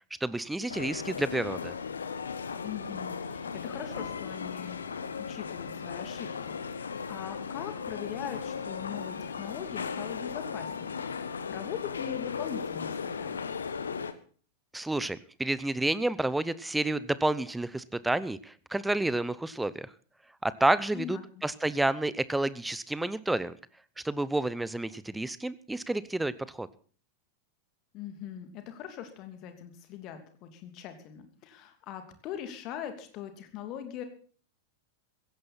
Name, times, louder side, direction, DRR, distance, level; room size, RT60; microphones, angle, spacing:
voice 1, 0.2-1.7 14.7-19.9 20.4-23.5 24.0-26.3 26.6-26.7, right 2 dB, 5° right, 17 dB, 0.8 m, -30 dB
sound 1, 0.7-14.1, left 6 dB, 70° left, 1.2 m, -36 dB
voice 2, 2.6-4.8 5.3-13.4 20.9-21.2 27.9-34.0, left 10 dB, 40° left, 7 dB, 2.8 m, -41 dB
16.0 x 16.0 x 4.3 m, 0.43 s
figure-of-eight pair, 90°, 0 cm